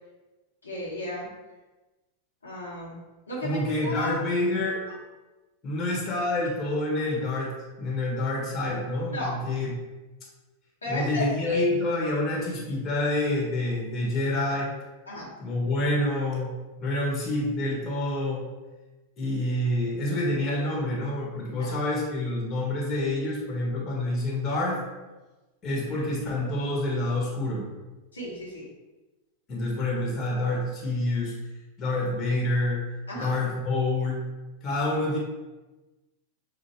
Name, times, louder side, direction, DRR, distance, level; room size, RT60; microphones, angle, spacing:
voice 1, 0.6-1.3 2.4-3.0 3.3-4.2 4.9-5.0 9.1-9.3 10.8-11.6 15.1-15.3 21.6-21.7 28.1-28.7 33.1-33.3, left 1 dB, 80° left, -6 dB, 1.2 m, -34 dB
voice 2, 3.4-4.8 5.6-9.7 10.9-14.7 15.4-18.5 19.2-24.8 25.6-27.6 29.5-31.3 31.8-32.8 33.1-34.2 34.6-35.2, left 2 dB, 30° left, -4 dB, 1.5 m, -27 dB
6.4 x 2.4 x 2.9 m, 1.1 s
figure-of-eight pair, 90°, 0 cm